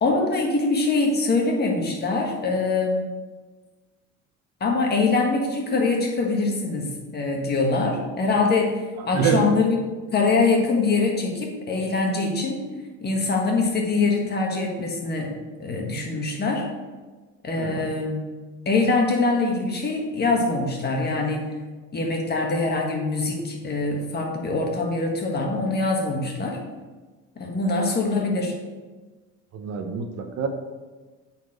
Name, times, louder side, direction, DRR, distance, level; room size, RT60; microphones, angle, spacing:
voice 1, 0.0-3.1 4.6-9.8 10.1-12.6 13.0-15.3 15.6-16.6 17.4-18.2 18.6-21.5 21.9-26.6 27.4-28.5, left 3 dB, 30° left, 1 dB, 1.5 m, -23 dB
voice 2, 9.1-9.5 17.6-17.9 29.5-30.5, right 6 dB, 55° right, 5 dB, 1.0 m, -25 dB
9.0 x 4.5 x 5.0 m, 1.3 s
cardioid pair, 135°, 32 cm